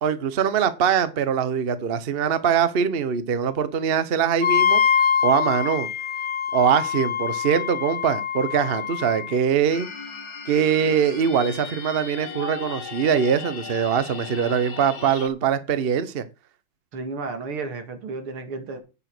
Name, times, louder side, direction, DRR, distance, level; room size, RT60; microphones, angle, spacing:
voice 1, 0.0-4.8 5.2-5.9 6.5-9.9 10.5-16.2, right 7 dB, 45° right, 0.7 m, -22 dB
Wind instrument woodwind instrument, 4.4-9.4, left 7 dB, 70° left, 0.6 m, -24 dB
sound 1, 9.7-15.3, left 6 dB, 50° left, 1.8 m, -37 dB
voice 2, 16.9-18.8, right 3 dB, 85° right, 2.9 m, -33 dB
9.0 x 7.1 x 6.1 m
omnidirectional pair, 2.3 m